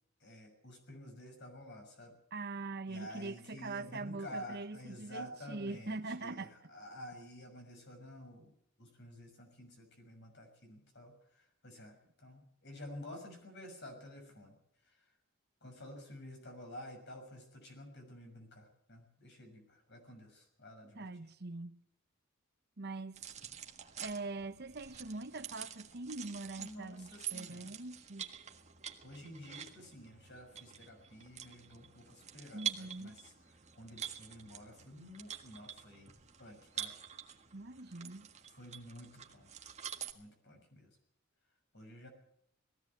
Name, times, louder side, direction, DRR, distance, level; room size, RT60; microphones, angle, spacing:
voice 1, 0.2-2.1 2.9-8.5 8.8-14.6 14.8-15.1 15.6-21.2 26.6-27.8 29.0-33.3 33.7-36.1 36.4-36.9 38.6-39.7 40.1-41.0 41.7-42.1, left 1 dB, 60° left, 6.4 m, -51 dB
voice 2, 2.3-6.7 20.9-21.7 22.8-23.2 24.0-28.3 32.5-33.2 37.5-38.3, right 3 dB, 55° right, 1.1 m, -43 dB
sound 1, 23.1-40.1, right 9 dB, 35° right, 1.7 m, -47 dB
19.5 x 16.0 x 8.4 m
head